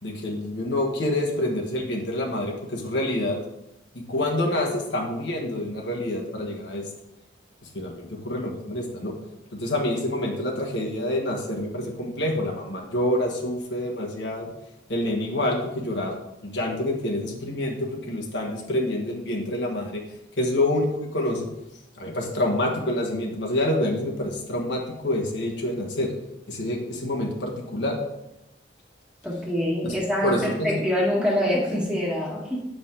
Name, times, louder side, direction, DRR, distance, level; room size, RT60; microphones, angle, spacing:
voice 1, 0.0-3.3 3.9-6.8 7.7-9.1 9.5-14.5 14.9-16.2 16.4-20.0 20.4-21.5 22.0-26.1 26.5-28.0 29.8-29.9 30.2-30.8, left 1 dB, 85° left, -1 dB, 1.5 m, -27 dB
voice 2, 29.2-30.4 30.6-32.6, equal, 5° right, -4 dB, 1.7 m, -25 dB
8.1 x 5.2 x 3.8 m, 0.89 s
head